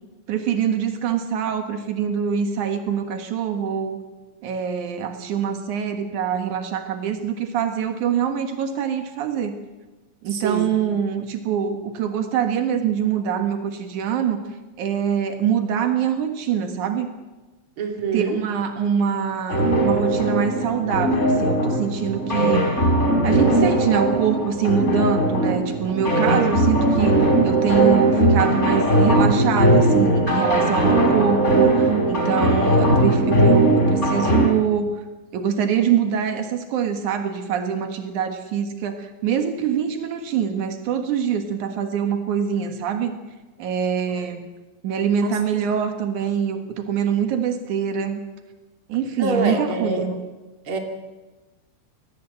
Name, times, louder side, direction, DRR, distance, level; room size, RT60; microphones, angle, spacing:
voice 1, 0.3-4.0 4.4-9.6 10.2-14.4 14.8-17.1 18.1-22.6 23.2-34.9 35.3-43.1 43.6-44.5 44.8-48.2 48.9-50.2, right 8 dB, 85° right, 6 dB, 3.1 m, -24 dB
voice 2, 10.3-10.8 17.8-18.4 30.6-31.0 44.2-44.3 45.2-45.6 49.2-50.1 50.6-50.8, right 3 dB, 45° right, 3 dB, 3.3 m, -26 dB
sound 1, 19.5-34.5, right 1 dB, 25° left, 3.8 m, -19 dB
24.0 x 18.0 x 7.8 m, 1.2 s
omnidirectional pair, 3.3 m